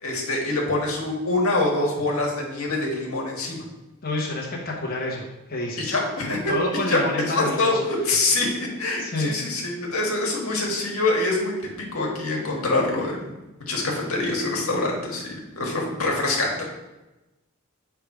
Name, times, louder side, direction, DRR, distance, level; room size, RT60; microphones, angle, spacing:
voice 1, 0.0-3.6 5.8-6.4 6.9-13.3 13.6-16.6, left 2 dB, 80° left, -1 dB, 1.5 m, -25 dB
voice 2, 4.0-5.2 5.5-7.8 9.0-9.3 15.6-15.8, left 2 dB, 45° left, -4 dB, 1.1 m, -29 dB
7.5 x 3.5 x 4.8 m, 1.0 s
head